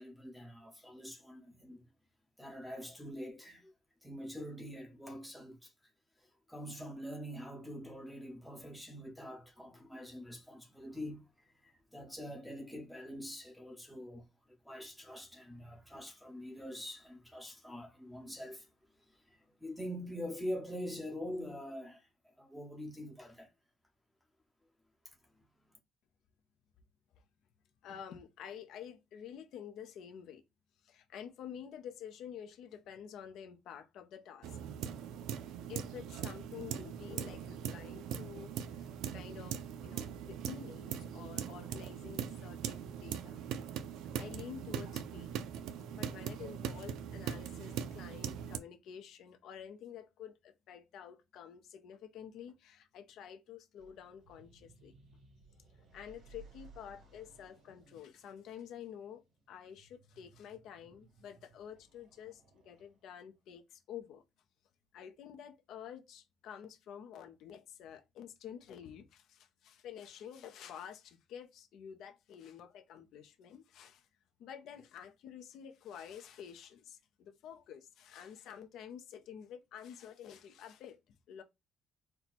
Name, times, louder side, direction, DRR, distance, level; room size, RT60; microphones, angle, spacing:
voice 1, 0.0-1.9 2.4-3.7 4.0-5.9 6.2-23.5 25.0-25.2, equal, ahead, 0.9 m, -45 dB
voice 2, 27.8-30.4 30.8-34.6 35.7-43.5 44.2-45.3 45.8-54.9 55.8-64.2 64.9-74.1 74.4-81.4, left 8 dB, 65° left, 0.6 m, -49 dB
sound 1, 34.4-48.6, right 8 dB, 80° right, 0.4 m, -41 dB
sound 2, 53.7-63.3, right 4 dB, 60° right, 2.4 m, -61 dB
4.4 x 2.2 x 4.1 m
cardioid pair, 160°, 0 cm